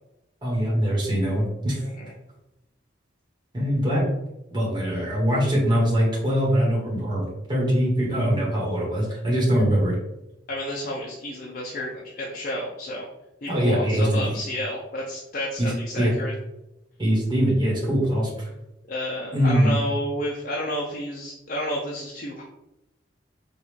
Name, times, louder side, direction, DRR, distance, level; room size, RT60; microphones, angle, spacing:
voice 1, 0.4-1.8 3.5-4.1 4.5-10.0 13.5-14.4 15.6-16.1 17.0-18.5 19.3-19.8, equal, 25° right, -5 dB, 1.2 m, -22 dB
voice 2, 10.5-13.1 13.4-16.3 18.9-22.4, left 1 dB, 50° left, -3 dB, 0.6 m, -31 dB
5.2 x 2.4 x 3.2 m, 0.89 s
head